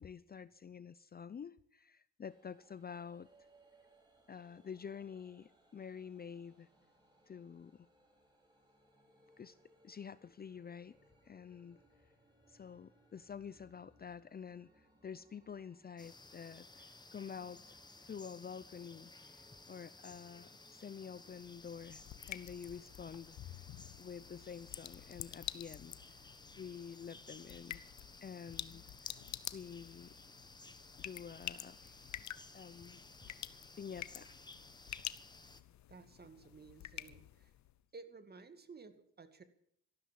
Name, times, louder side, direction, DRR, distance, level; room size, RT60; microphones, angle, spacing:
voice 1, 0.0-3.5 4.3-6.7 7.3-7.9 9.4-9.6 9.8-11.0 11.2-11.8 12.5-23.4 24.0-26.0 26.6-27.8 28.2-29.2 29.5-30.2 31.0-32.1 32.5-34.4, left 7 dB, 30° left, 16 dB, 0.6 m, -49 dB
sound 1, 2.2-21.3, right 1 dB, 15° right, 5.3 m, -69 dB
sound 2, 16.0-35.6, left 3 dB, 15° left, 1.2 m, -57 dB
sound 3, 21.3-37.8, left 12 dB, 70° left, 0.9 m, -49 dB
voice 2, 35.9-37.5 37.9-39.4, right 4 dB, 30° right, 10 dB, 2.2 m, -55 dB
14.0 x 13.0 x 7.5 m, 0.68 s
cardioid pair, 90°, 30 cm